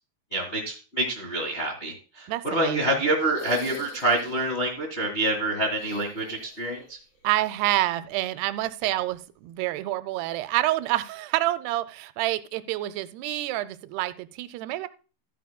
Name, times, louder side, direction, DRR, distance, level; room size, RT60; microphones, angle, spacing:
voice 1, 0.3-7.0, right 1 dB, 60° left, -1 dB, 0.6 m, -27 dB
voice 2, 2.3-2.8 7.2-14.9, right 16 dB, 85° right, 14 dB, 2.6 m, -28 dB
sound 1, 3.2-4.6 5.7-6.9 7.2-7.3 8.9-9.0, right 2 dB, 45° left, 4.2 m, -43 dB
13.0 x 9.4 x 2.2 m, 0.34 s
omnidirectional pair, 4.7 m